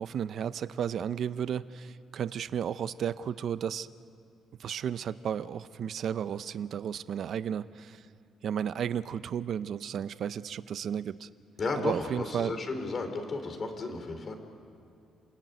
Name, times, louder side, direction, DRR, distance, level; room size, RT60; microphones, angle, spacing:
voice 1, 0.0-3.9 4.6-8.0 8.4-11.3 11.8-12.5, right 8 dB, 65° right, 14 dB, 0.8 m, -33 dB
voice 2, 11.6-14.4, left 3 dB, 45° left, 6 dB, 3.9 m, -33 dB
28.5 x 18.5 x 9.4 m, 2.7 s
cardioid pair, 90°, 0 cm